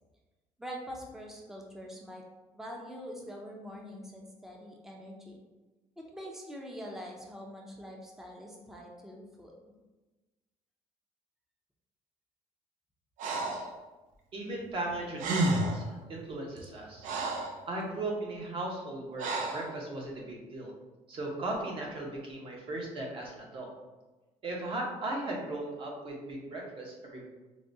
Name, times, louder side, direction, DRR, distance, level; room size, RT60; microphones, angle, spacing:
voice 1, 0.6-2.2 2.5-5.4 6.0-9.5, equal, 5° right, -1 dB, 0.5 m, -44 dB
Breathing, 13.2-13.7 14.9-15.0 15.2-15.9 16.6-17.6 19.2-19.7, right 2 dB, 75° right, 0.5 m, -31 dB
voice 2, 14.3-17.0 17.7-20.7 21.1-23.7 24.4-27.2, right 2 dB, 45° right, -1 dB, 0.9 m, -37 dB
4.7 x 2.2 x 2.6 m, 1.2 s
cardioid pair, 125°, 13 cm